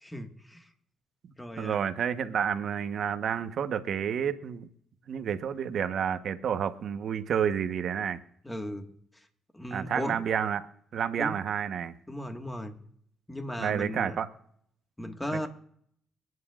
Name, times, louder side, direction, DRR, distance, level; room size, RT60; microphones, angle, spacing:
voice 1, 0.0-0.7 1.4-1.8 8.4-8.9 9.5-10.2 11.2-11.3 12.1-12.8 13.3-14.2 15.0-15.5, left 1 dB, 10° left, 5 dB, 1.6 m, -36 dB
voice 2, 1.6-4.7 5.1-8.2 9.7-10.7 10.9-11.9 13.6-14.3 15.3-15.5, right 8 dB, 65° right, 9 dB, 1.0 m, -30 dB
27.5 x 9.6 x 2.4 m, 0.68 s
cardioid pair, 90°, 0 cm